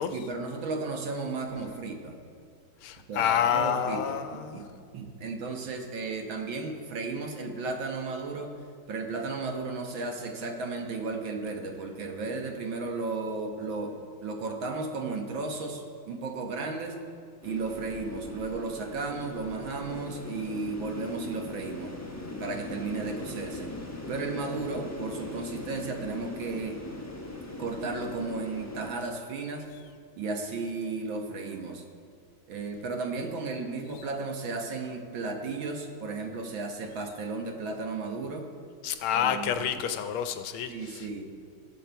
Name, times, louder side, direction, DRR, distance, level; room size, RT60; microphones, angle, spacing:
voice 1, 0.1-2.2 3.1-8.5 8.9-14.0 14.2-17.0 17.4-21.9 22.4-23.7 24.1-26.8 27.6-29.7 30.2-31.8 32.5-38.5 39.2-39.8 40.7-41.2, right 3 dB, 65° right, 3 dB, 1.9 m, -34 dB
voice 2, 2.8-4.6 38.8-41.1, left 9 dB, 80° left, 9 dB, 1.5 m, -28 dB
sound 1, 17.4-28.9, left 2 dB, 15° left, 0.6 m, -40 dB
20.0 x 6.9 x 4.5 m, 2.1 s
omnidirectional pair, 2.4 m